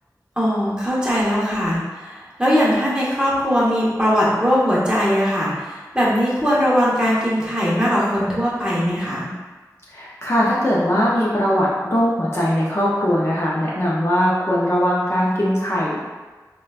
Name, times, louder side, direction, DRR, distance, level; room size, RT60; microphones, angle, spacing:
voice 1, 0.4-9.3, equal, 15° right, -8 dB, 1.0 m, -20 dB
voice 2, 9.9-16.0, equal, 40° left, -6 dB, 0.5 m, -20 dB
3.7 x 2.2 x 2.3 m, 1.3 s
wide cardioid pair, 50°, 7 cm